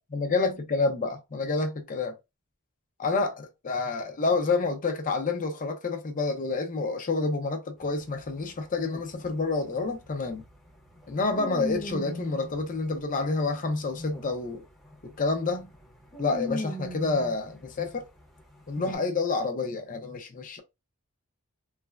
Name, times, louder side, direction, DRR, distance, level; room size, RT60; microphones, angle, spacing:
voice 1, 0.1-2.1 3.0-10.4 11.1-14.6 15.2-15.7 16.2-18.1 18.7-20.6, left 3 dB, 35° left, 0.6 m, -28 dB
sound 1, 7.8-14.5 14.8-15.1 15.5-18.0 18.7-18.9, left 1 dB, ahead, 0.7 m, -38 dB
3.2 x 2.1 x 2.3 m
head